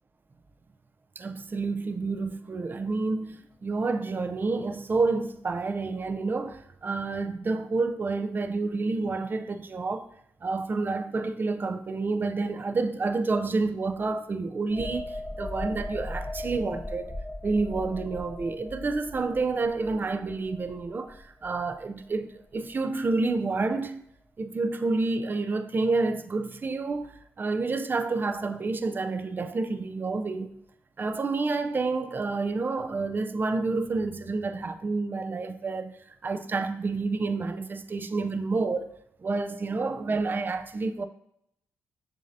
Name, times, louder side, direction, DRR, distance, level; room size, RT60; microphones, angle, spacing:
voice 1, 1.2-10.1 10.4-24.0 24.4-30.5 31.0-36.0 36.2-41.1, right 3 dB, 35° right, 0.4 m, -29 dB
sound 1, 14.7-22.1 22.5-22.7, left 1 dB, 15° left, 1.0 m, -38 dB
7.3 x 2.7 x 2.6 m
cardioid pair, 60°, 6 cm